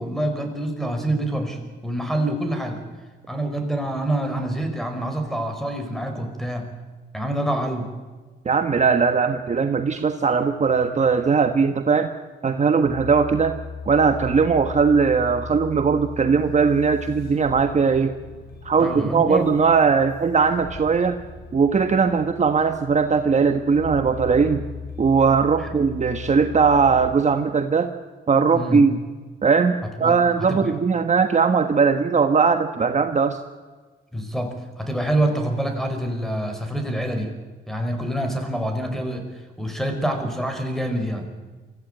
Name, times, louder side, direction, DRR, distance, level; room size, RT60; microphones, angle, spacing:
voice 1, 0.0-2.8 3.3-6.7 7.1-7.9 18.8-19.5 25.6-25.7 28.5-28.8 30.0-30.7 34.1-37.3 37.7-39.3 39.6-41.3, right 1 dB, ahead, 6 dB, 5.1 m, -26 dB
voice 2, 8.4-12.1 12.4-13.6 13.9-18.1 18.6-21.2 21.5-24.6 25.0-27.9 28.3-29.0 29.4-33.4, right 5 dB, 35° right, 7 dB, 1.3 m, -19 dB
sound 1, 12.8-27.1, left 5 dB, 55° left, 6.5 m, -38 dB
24.0 x 14.5 x 9.1 m, 1.3 s
cardioid pair, 90°, 20 cm